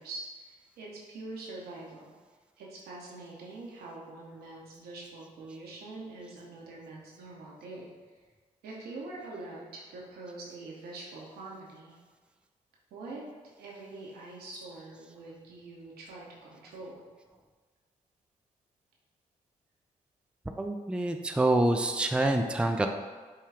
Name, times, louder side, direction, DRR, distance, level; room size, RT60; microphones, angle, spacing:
voice 1, 0.0-2.1 2.6-7.9 8.6-12.0 12.9-13.3 13.6-17.0, right 2 dB, 80° right, -3 dB, 0.9 m, -44 dB
voice 2, 20.6-22.9, right 1 dB, 5° right, 5 dB, 0.4 m, -26 dB
5.6 x 2.3 x 3.4 m, 1.4 s
supercardioid pair, 45°, 16 cm